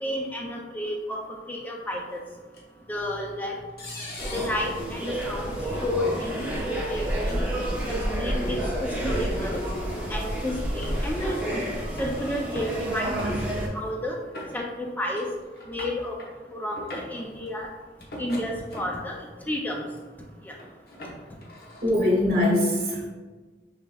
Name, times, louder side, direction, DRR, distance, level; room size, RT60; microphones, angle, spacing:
voice 1, 0.0-2.2 2.9-3.6 4.3-5.6 5.8-7.4 7.9-9.6 10.1-13.3 13.7-14.2 14.5-15.3 15.7-16.2 16.5-17.7 18.2-19.2 19.5-19.8 20.4-20.5, left 1 dB, 10° left, 0 dB, 0.3 m, -31 dB
sound 1, 2.5-2.6 3.8-4.6 5.5-5.6 6.0-6.2 7.2-7.4 8.1-8.6 9.7-9.9 10.6-11.0 11.6-12.2 12.6-12.8 13.2-13.7 14.3-14.9 15.2-15.3 15.5-16.3 16.7-17.2 18.0-19.1 19.6-20.0 20.6-21.9, left 1 dB, 55° left, 0.9 m, -39 dB
sound 2, 4.2-13.7, right 1 dB, 10° right, 0.8 m, -29 dB
voice 2, 21.8-23.1, left 1 dB, 60° right, -3 dB, 1.3 m, -22 dB
5.8 x 3.5 x 2.2 m, 1.4 s
head